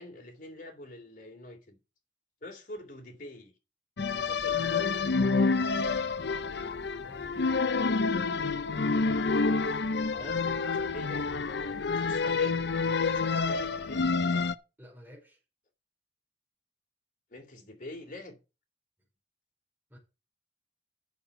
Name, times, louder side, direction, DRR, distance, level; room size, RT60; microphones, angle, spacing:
voice 1, 0.0-1.8 2.4-3.5 4.2-4.9 10.1-14.0 17.3-18.3, left 1 dB, 50° left, 3.0 m, -46 dB
sound 1, 4.0-14.5, left 4 dB, 70° left, 0.6 m, -28 dB
voice 2, 7.0-8.3 14.8-15.4 19.9-20.0, equal, 10° right, 4.7 m, -51 dB
7.0 x 6.4 x 7.8 m
head